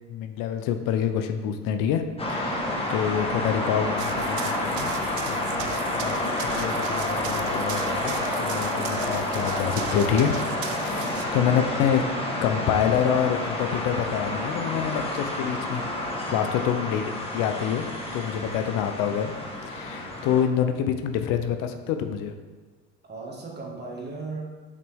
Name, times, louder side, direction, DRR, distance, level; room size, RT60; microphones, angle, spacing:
voice 1, 0.1-2.0 2.3-2.6 2.9-5.0 5.3-6.1 6.4-10.3 10.7-12.0 12.4-16.0 16.3-17.9 18.1-19.3 19.6-22.3, left 8 dB, 70° left, 7 dB, 0.7 m, -27 dB
sound 1, 2.2-20.4, left 1 dB, 15° left, 1.4 m, -29 dB
Run, 4.0-11.2, right 10 dB, 60° right, 0.6 m, -39 dB
voice 2, 10.8-11.3 16.1-16.5 18.3-18.4 23.1-24.4, right 3 dB, 30° right, -2 dB, 1.8 m, -38 dB
6.6 x 5.3 x 3.6 m, 1.4 s
supercardioid pair, 80°, 35 cm